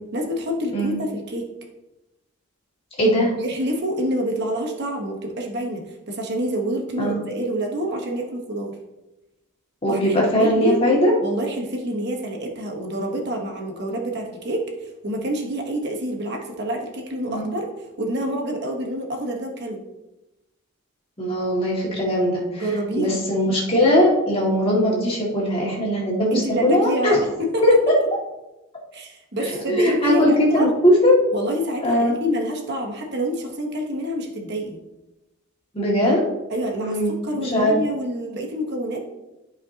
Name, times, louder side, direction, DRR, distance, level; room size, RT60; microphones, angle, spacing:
voice 1, 0.1-1.5 3.4-8.7 9.9-10.8 11.2-17.7 18.0-19.8 22.6-23.2 26.3-27.8 28.9-30.7 31.3-34.8 36.5-39.0, equal, 50° right, 2 dB, 1.2 m, -27 dB
voice 2, 3.0-3.3 7.0-7.2 9.8-11.1 17.3-17.4 21.2-27.2 27.6-27.9 29.4-31.2 31.8-32.2 35.7-36.3 36.8-37.8, equal, 25° left, -4 dB, 2.1 m, -20 dB
12.5 x 5.2 x 2.9 m, 0.99 s
head